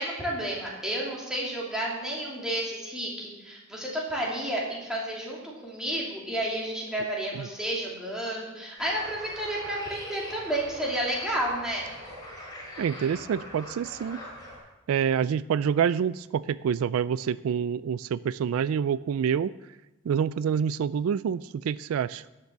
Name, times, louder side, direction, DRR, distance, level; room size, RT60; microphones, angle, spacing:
voice 1, 0.0-11.9, right 1 dB, 5° right, -5 dB, 2.7 m, -31 dB
sound 1, 8.8-14.6, left 1 dB, 15° left, 4.1 m, -43 dB
voice 2, 12.8-14.2 14.9-19.5 20.1-22.3, right 7 dB, 80° right, 18 dB, 0.3 m, -27 dB
11.5 x 6.8 x 7.0 m, 1.1 s
head